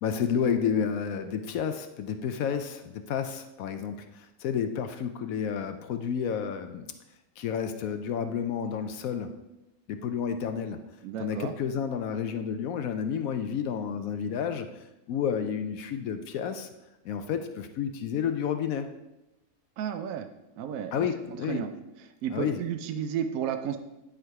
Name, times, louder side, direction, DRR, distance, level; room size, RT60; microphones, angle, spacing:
voice 1, 0.0-6.9 7.4-9.3 9.9-10.8 11.2-14.7 15.1-16.7 17.0-18.9 20.9-21.6 22.3-22.6, left 7 dB, 75° left, 8 dB, 1.0 m, -30 dB
voice 2, 11.0-11.5 19.8-20.3 20.6-21.1 21.5-21.7 22.2-23.8, right 9 dB, 75° right, 7 dB, 1.0 m, -32 dB
10.5 x 3.8 x 4.7 m, 0.95 s
omnidirectional pair, 1.5 m